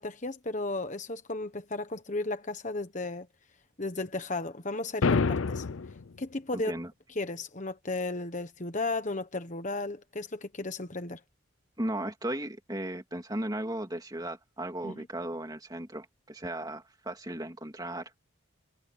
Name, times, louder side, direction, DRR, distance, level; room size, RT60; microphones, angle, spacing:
voice 1, 0.0-3.3 3.8-5.7 6.2-6.7 7.2-11.2 14.8-15.1, left 2 dB, 35° left, 1.3 m, -34 dB
sound 1, 5.0-6.0, left 4 dB, 75° left, 0.6 m, -26 dB
voice 2, 6.5-6.9 11.8-18.1, right 1 dB, 20° right, 2.9 m, -36 dB
head